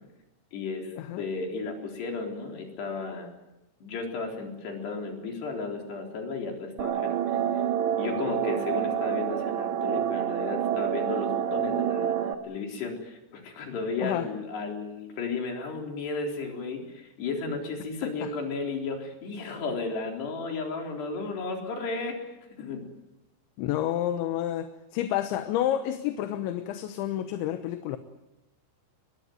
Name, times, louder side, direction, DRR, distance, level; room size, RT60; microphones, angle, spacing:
voice 1, 0.5-3.3 3.8-7.4 8.0-22.3 22.6-22.9, left 4 dB, 60° left, 2 dB, 5.9 m, -34 dB
sound 1, 6.8-12.4, right 10 dB, 70° right, 3.4 m, -28 dB
voice 2, 23.6-28.0, left 12 dB, 80° left, 9 dB, 3.3 m, -30 dB
22.5 x 21.5 x 9.5 m, 0.93 s
omnidirectional pair, 5.5 m